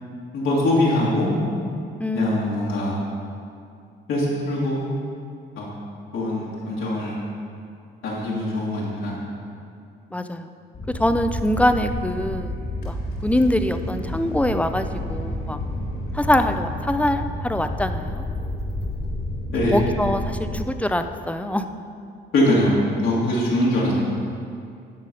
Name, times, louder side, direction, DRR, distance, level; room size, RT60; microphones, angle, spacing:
voice 1, 0.3-1.3 2.1-3.0 4.1-4.8 5.6-5.7 6.1-7.2 8.0-9.2 19.5-19.8 22.3-23.9, left 1 dB, 80° left, -6 dB, 1.9 m, -22 dB
voice 2, 2.0-2.6 10.1-10.5 10.9-12.5 12.8-13.0 13.2-15.6 16.1-18.2 19.7-21.7, left 1 dB, 5° left, 8 dB, 0.4 m, -23 dB
sound 1, 10.7-20.6, left 1 dB, 50° left, 1.4 m, -30 dB
12.0 x 4.0 x 5.2 m, 2.4 s
cardioid pair, 90°, 20 cm